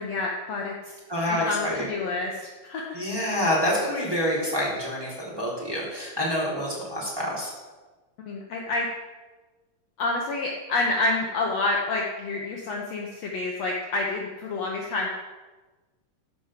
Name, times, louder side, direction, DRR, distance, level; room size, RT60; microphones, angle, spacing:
voice 1, 0.0-1.0 1.3-3.0 8.3-8.9 10.0-15.1, left 2 dB, 60° left, -1 dB, 2.0 m, -28 dB
voice 2, 1.1-1.8 2.9-7.5, left 1 dB, 5° right, -5 dB, 3.2 m, -27 dB
13.0 x 5.4 x 7.3 m, 1.2 s
omnidirectional pair, 3.8 m